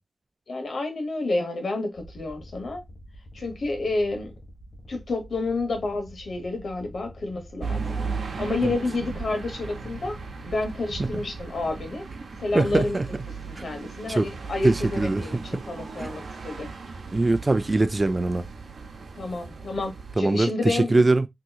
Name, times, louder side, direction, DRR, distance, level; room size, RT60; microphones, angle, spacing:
voice 1, 0.5-2.8 3.3-4.3 4.9-8.0 8.4-10.2 10.4-12.0 12.4-13.0 13.5-16.7 17.0-17.1 19.2-21.0, left 2 dB, 80° left, 1.1 m, -29 dB
sound 1, 1.9-10.7, equal, 55° left, 1.3 m, -47 dB
sound 2, 7.6-20.2, right 4 dB, 85° right, 0.6 m, -36 dB
voice 2, 12.5-13.1 13.6-13.7 14.1-14.3 14.6-15.2 15.5-15.6 16.0-16.1 17.1-18.5 20.2-21.3, right 2 dB, 35° right, 0.3 m, -22 dB
3.6 x 2.9 x 2.3 m
wide cardioid pair, 70°, 0 cm